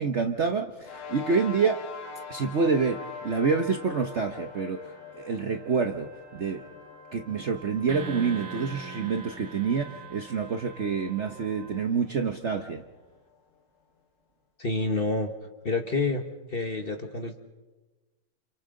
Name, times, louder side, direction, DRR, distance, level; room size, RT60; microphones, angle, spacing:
voice 1, 0.0-1.8 2.3-4.8 5.2-6.1 6.3-6.6 7.1-12.8, right 5 dB, 50° right, 5 dB, 0.9 m, -27 dB
sound 1, 0.8-13.5, left 6 dB, 70° left, 1.9 m, -45 dB
sound 2, 2.0-11.9, right 4 dB, 10° left, 2.1 m, -49 dB
sound 3, 7.9-11.4, right 3 dB, 65° right, 1.6 m, -42 dB
voice 2, 14.6-15.3 15.6-16.2 16.5-17.4, left 3 dB, 35° left, 6 dB, 1.2 m, -28 dB
30.0 x 28.5 x 3.8 m, 1.2 s
omnidirectional pair, 2.1 m